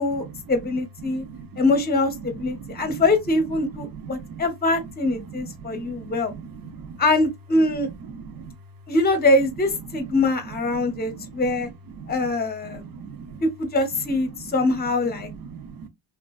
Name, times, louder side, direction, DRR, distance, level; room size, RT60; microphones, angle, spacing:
voice 1, 0.0-1.2 1.6-6.3 7.0-7.9 8.9-11.7 12.1-12.9 13.4-15.3, left 2 dB, 20° left, 0.7 m, -23 dB
voice 2, 1.0-1.6 2.3-3.0 3.8-4.4 5.2-6.1 6.6-7.0 7.8-8.5 9.9-10.2 10.7-11.7 12.0-12.3 12.7-13.4 14.2-14.6 15.1-15.9, right 6 dB, 50° right, 0.7 m, -39 dB
3.3 x 2.4 x 2.2 m
cardioid pair, 130°, 44 cm